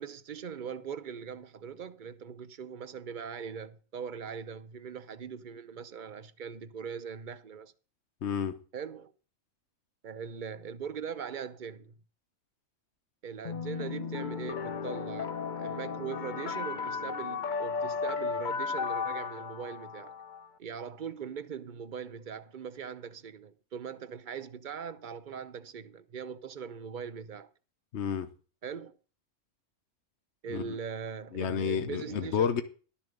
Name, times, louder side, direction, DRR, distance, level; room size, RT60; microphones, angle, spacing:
voice 1, 0.0-7.7 8.7-9.1 10.0-11.9 13.2-20.1 20.6-27.5 28.6-29.0 30.4-32.6, right 7 dB, 45° right, 0.8 m, -41 dB
voice 2, 8.2-8.5 27.9-28.3 30.5-30.7 31.3-32.6, left 7 dB, 65° left, 1.2 m, -30 dB
sound 1, 13.4-20.5, left 5 dB, 50° left, 0.7 m, -35 dB
12.5 x 7.0 x 5.2 m
omnidirectional pair, 1.3 m